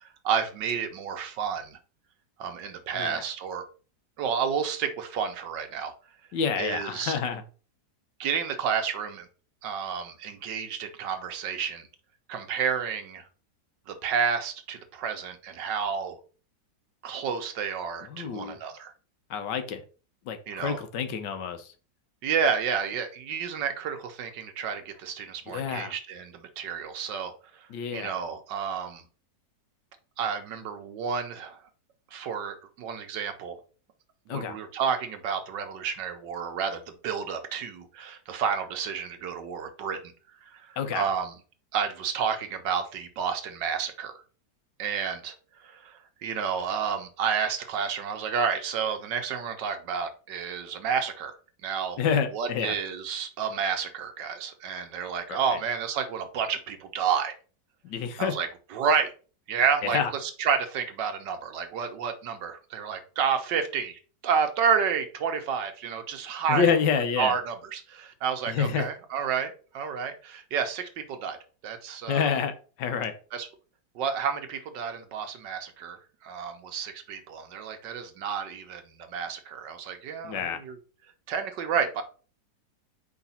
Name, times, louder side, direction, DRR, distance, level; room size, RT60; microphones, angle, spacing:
voice 1, 0.0-1.8 2.4-3.7 4.2-5.9 6.6-7.2 8.2-9.3 9.6-11.9 12.3-13.2 13.9-16.2 17.0-18.9 20.5-20.8 22.2-27.3 27.9-29.0 30.2-31.6 32.1-33.6 34.3-40.0 40.4-41.3 41.7-44.2 44.8-45.3 45.6-51.4 51.6-52.0 52.3-57.3 58.2-59.1 59.5-66.7 67.2-71.4 71.6-72.3 73.3-73.5 73.9-80.8 81.3-82.0, right 7 dB, 90° right, 7 dB, 1.6 m, -30 dB
voice 2, 6.3-7.4 18.0-18.6 19.3-19.8 20.3-21.7 25.5-25.9 27.7-28.2 34.3-34.6 40.8-41.1 52.0-52.7 55.3-55.6 57.8-58.3 59.8-60.1 66.5-67.3 68.5-68.9 72.1-72.5 72.8-73.1 80.2-80.6, left 6 dB, 80° left, 8 dB, 1.5 m, -28 dB
4.8 x 4.0 x 5.6 m, 0.38 s
omnidirectional pair, 1.9 m